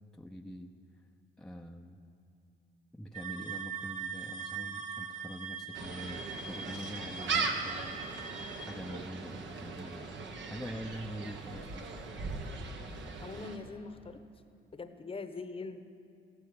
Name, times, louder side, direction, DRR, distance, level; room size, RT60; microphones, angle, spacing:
voice 1, 0.1-0.7 1.4-2.0 2.9-8.0 8.6-11.9, equal, 5° left, 2 dB, 0.7 m, -44 dB
sound 1, 3.1-8.7, right 6 dB, 35° right, 1.2 m, -42 dB
Gull seagull, 5.7-13.6, right 4 dB, 70° right, 1.5 m, -39 dB
voice 2, 13.2-14.2 14.7-15.8, left 4 dB, 30° left, 9 dB, 1.0 m, -42 dB
14.5 x 13.5 x 6.9 m, 2.6 s
cardioid pair, 90°, 20 cm